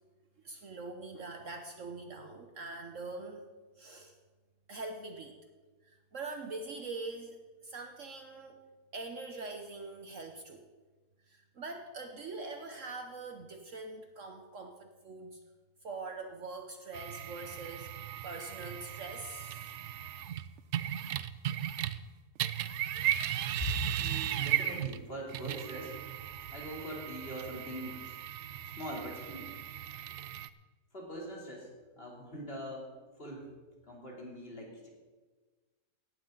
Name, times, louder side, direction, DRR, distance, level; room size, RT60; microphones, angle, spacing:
voice 1, 0.4-3.5 3.8-4.1 4.7-5.4 5.8-8.6 8.9-10.7 11.3-15.4 15.8-17.9 18.2-19.8, right 3 dB, 55° right, 4 dB, 1.2 m, -43 dB
sound 1, 16.9-22.1 22.4-30.5, right 11 dB, 70° right, 0.6 m, -36 dB
voice 2, 23.6-26.0 26.5-28.1 28.6-29.5 30.9-31.7 32.0-32.9 33.2-33.5 33.8-34.9, equal, 35° left, -2 dB, 3.4 m, -41 dB
17.0 x 12.0 x 3.9 m, 1.3 s
omnidirectional pair, 1.7 m